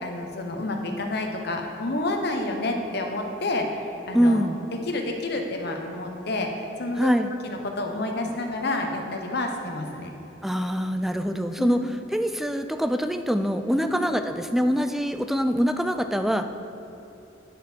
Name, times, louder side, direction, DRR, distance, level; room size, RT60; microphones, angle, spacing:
voice 1, 0.0-3.7 4.1-4.5 4.8-6.5 6.8-7.1 7.4-10.1 11.6-11.9 13.8-14.0, left 2 dB, 65° left, 3 dB, 1.0 m, -29 dB
voice 2, 4.1-4.6 7.0-7.3 10.4-16.5, equal, ahead, 8 dB, 0.3 m, -24 dB
9.9 x 7.0 x 4.5 m, 3.0 s
head